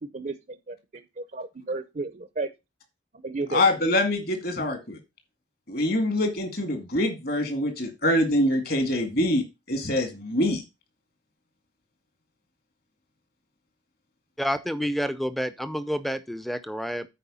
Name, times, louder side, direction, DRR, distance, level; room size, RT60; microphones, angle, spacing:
voice 1, 0.0-2.5 3.2-3.6, right 3 dB, 40° right, 12 dB, 0.6 m, -33 dB
voice 2, 3.5-5.0 5.7-10.6, left 1 dB, 50° left, 7 dB, 2.1 m, -25 dB
voice 3, 14.4-17.1, equal, ahead, 13 dB, 0.6 m, -29 dB
10.0 x 4.6 x 5.5 m, 0.25 s
head